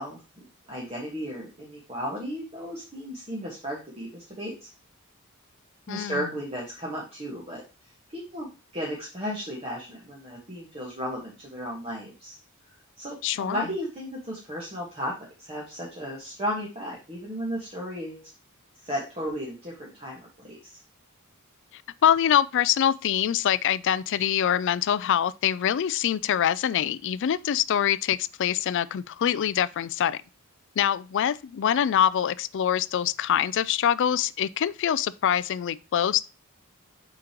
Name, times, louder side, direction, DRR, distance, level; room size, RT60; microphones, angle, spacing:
voice 1, 0.0-4.7 5.9-7.6 8.1-8.5 8.7-12.4 13.0-18.3 18.8-20.7, equal, 30° right, 1.4 m, -34 dB
voice 2, 5.9-6.2 13.2-13.6 22.0-30.2 30.8-36.2, left 9 dB, 55° left, 0.3 m, -24 dB
7.4 x 5.1 x 2.9 m
head